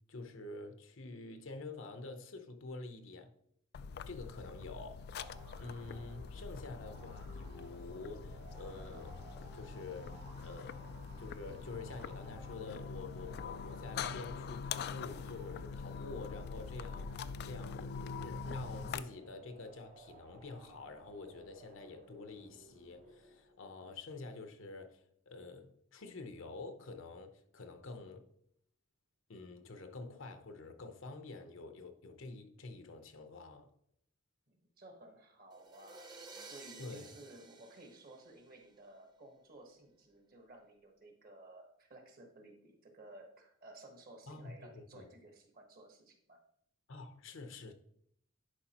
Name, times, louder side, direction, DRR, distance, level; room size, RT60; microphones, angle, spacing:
voice 1, 0.0-3.3 4.1-5.1 5.6-9.2 9.5-10.8 11.2-17.9 18.2-28.3 29.3-33.7 36.8-37.1 44.3-45.1 46.9-47.7, left 3 dB, 65° left, 0.8 m, -48 dB
sound 1, 3.7-19.0, left 5 dB, 50° left, 0.3 m, -44 dB
sound 2, 5.2-23.6, right 2 dB, 70° right, 2.8 m, -58 dB
voice 2, 34.5-46.4, right 1 dB, 45° right, 1.3 m, -56 dB
sound 3, 35.5-38.8, right 3 dB, 20° right, 0.8 m, -54 dB
10.5 x 4.9 x 2.9 m
head